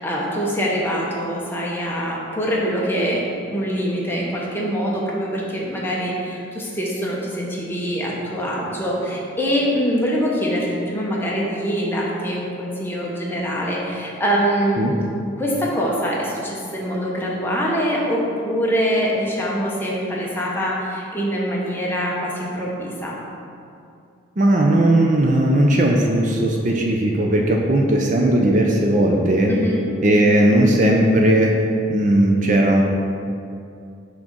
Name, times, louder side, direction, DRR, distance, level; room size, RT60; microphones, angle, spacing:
voice 1, 0.0-15.0 15.4-23.2 29.5-29.9, equal, 10° left, -4 dB, 0.9 m, -24 dB
voice 2, 24.4-29.5 30.0-31.5 31.9-32.8, right 1 dB, 40° right, 0 dB, 0.5 m, -17 dB
6.1 x 3.8 x 6.1 m, 2.5 s
head